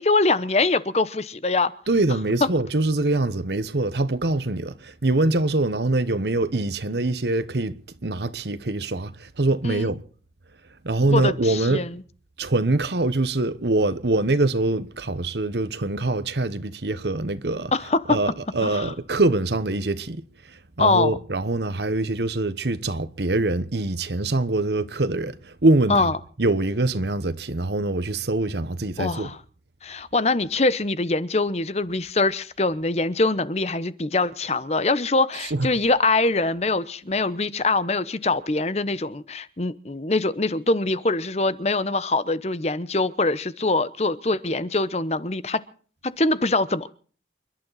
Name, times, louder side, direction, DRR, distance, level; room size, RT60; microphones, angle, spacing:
voice 1, 0.0-1.7 9.6-9.9 11.1-12.0 17.7-18.2 18.6-18.9 20.8-21.1 25.9-26.1 29.0-29.4 29.8-45.6 46.0-46.9, left 3 dB, 35° left, 0.9 m, -23 dB
voice 2, 1.9-10.0 10.8-11.9 12.4-17.7 18.1-26.1 26.4-29.3 35.4-35.7, right 2 dB, 75° right, 1.1 m, -24 dB
28.5 x 12.0 x 4.1 m
head